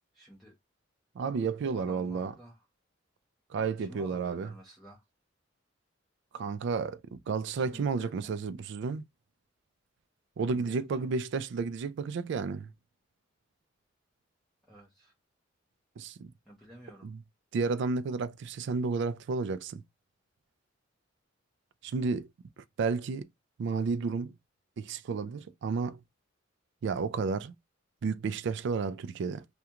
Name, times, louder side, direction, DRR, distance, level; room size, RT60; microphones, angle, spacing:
voice 1, 0.1-0.6 1.7-2.6 3.8-5.0 7.5-8.3 10.5-10.8 14.7-15.1 16.4-17.1, equal, ahead, 0.6 m, -51 dB
voice 2, 1.2-2.3 3.5-4.5 6.3-9.0 10.4-12.7 16.0-16.3 17.0-17.2 17.5-19.8 21.8-22.3 22.6-23.3 23.6-24.3 24.8-26.0 26.8-27.5 28.0-29.4, right 4 dB, 65° right, 0.3 m, -32 dB
2.4 x 2.2 x 2.8 m
head